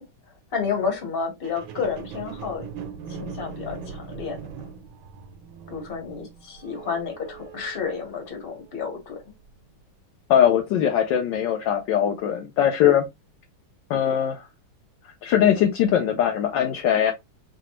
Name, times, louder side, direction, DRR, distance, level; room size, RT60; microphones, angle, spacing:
voice 1, 0.5-2.6 3.1-4.7 5.7-9.2, left 5 dB, 35° left, 1.2 m, -31 dB
sound 1, 1.4-8.9 9.4-9.5, right 6 dB, 80° right, 1.5 m, -40 dB
voice 2, 10.3-13.0 13.9-14.4 15.2-17.1, left 9 dB, 75° left, 1.2 m, -21 dB
4.8 x 2.3 x 2.9 m
omnidirectional pair, 2.2 m